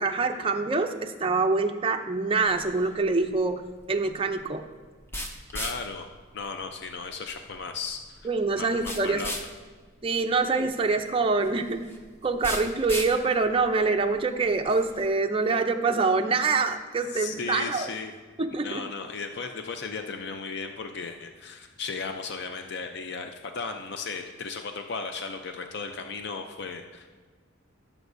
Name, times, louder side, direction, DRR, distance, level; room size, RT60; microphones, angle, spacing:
voice 1, 0.0-3.6 3.9-4.6 8.2-9.3 10.0-11.8 12.2-17.9 18.4-18.8, right 3 dB, 25° right, 5 dB, 0.5 m, -25 dB
sound 1, 2.5-15.1, equal, 10° left, 0.7 m, -40 dB
voice 2, 5.5-6.1 6.3-8.3 8.6-9.4 17.1-18.1 18.6-27.1, left 4 dB, 55° left, 5 dB, 0.5 m, -35 dB
16.0 x 7.2 x 2.6 m, 1.4 s
head